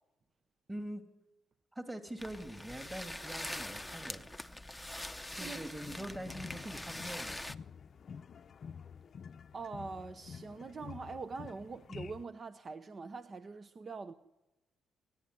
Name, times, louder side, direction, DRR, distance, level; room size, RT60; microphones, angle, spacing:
voice 1, 0.7-1.0 1.7-4.3 5.4-7.5, right 1 dB, 10° right, 2.6 m, -43 dB
sound 1, 2.2-7.5, left 1 dB, 5° left, 0.8 m, -43 dB
sound 2, 5.7-12.3, left 6 dB, 50° left, 0.6 m, -49 dB
voice 2, 9.5-14.1, right 4 dB, 40° right, 0.8 m, -43 dB
26.5 x 11.0 x 9.7 m
cardioid pair, 90°, 0 cm